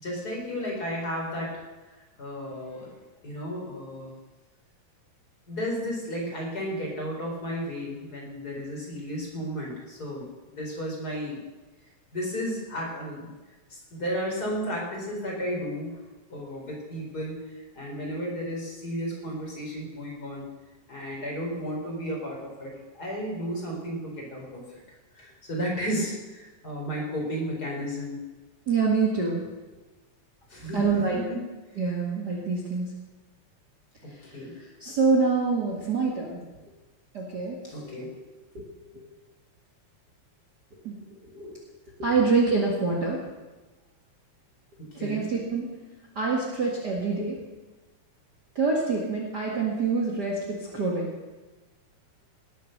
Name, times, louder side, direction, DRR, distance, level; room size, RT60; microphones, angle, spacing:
voice 1, 0.0-1.6 1.9-2.9 3.2-4.1 5.5-11.4 12.1-13.3 13.7-16.0 16.3-20.5 20.9-24.8 25.1-28.2 30.5-31.5 34.0-34.5 37.7-38.2 45.0-45.3, equal, 30° left, -2 dB, 4.7 m, -33 dB
voice 2, 28.7-29.4 30.7-31.2 31.8-32.9 34.3-34.4 34.8-36.4 37.1-37.7 38.5-38.6 40.8-41.0 41.3-41.6 42.0-43.2 45.0-45.7 46.2-47.4 48.6-51.1, right 4 dB, 40° right, -2 dB, 2.1 m, -26 dB
18.5 x 8.5 x 6.8 m, 1.2 s
omnidirectional pair, 3.4 m